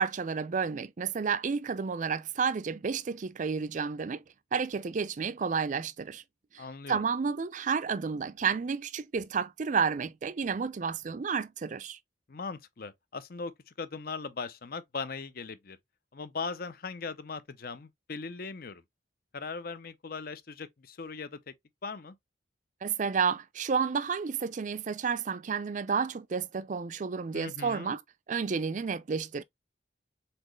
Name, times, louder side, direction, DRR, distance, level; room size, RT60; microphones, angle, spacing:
voice 1, 0.0-4.2 4.5-6.2 6.5-12.0 22.8-28.0 28.3-29.4, right 6 dB, 40° right, 0.4 m, -31 dB
voice 2, 6.6-7.0 12.3-15.8 16.1-18.8 19.3-21.5 21.8-22.1 27.3-27.9, left 4 dB, 50° left, 0.6 m, -39 dB
4.3 x 3.9 x 3.0 m
head